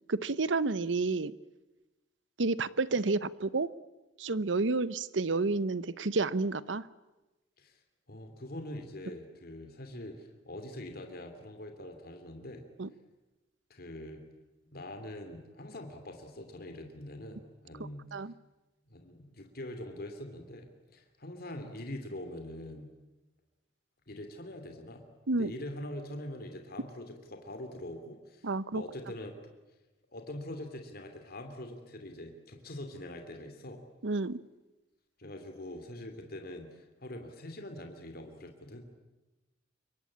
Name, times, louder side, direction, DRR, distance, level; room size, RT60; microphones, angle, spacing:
voice 1, 0.1-1.3 2.4-3.7 4.2-6.8 12.8-12.9 18.1-18.3 25.3-25.5 28.4-28.8 34.0-34.4, right 3 dB, 80° right, 17 dB, 0.9 m, -30 dB
voice 2, 8.1-12.6 13.7-14.2 14.7-18.1 18.9-22.9 24.1-25.1 25.3-29.4 30.1-33.8 35.2-38.8, left 1 dB, 55° left, 5 dB, 3.0 m, -43 dB
27.0 x 23.5 x 8.7 m, 1.1 s
head